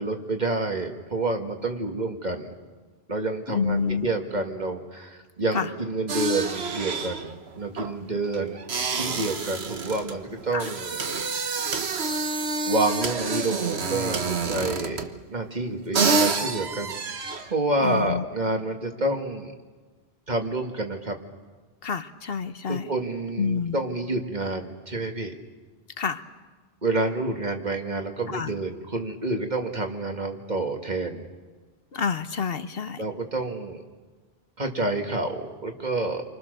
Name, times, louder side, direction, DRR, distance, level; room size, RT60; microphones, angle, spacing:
voice 1, 0.0-2.5 3.1-8.6 8.9-11.0 11.8-12.0 12.7-15.0 15.3-19.5 20.3-21.2 22.7-25.3 26.8-31.2 33.0-33.8 34.6-36.2, right 2 dB, 45° right, 4 dB, 2.2 m, -28 dB
voice 2, 3.5-4.1 5.5-5.7 10.5-10.7 17.8-18.2 21.8-22.9 23.4-23.8 26.0-26.2 28.3-28.5 31.9-33.0, left 5 dB, 65° left, 10 dB, 1.2 m, -28 dB
sound 1, 6.1-15.2 15.7-15.8 15.9-17.5, right 4 dB, 85° right, 1.5 m, -28 dB
29.5 x 24.5 x 6.7 m, 1.4 s
omnidirectional pair, 1.1 m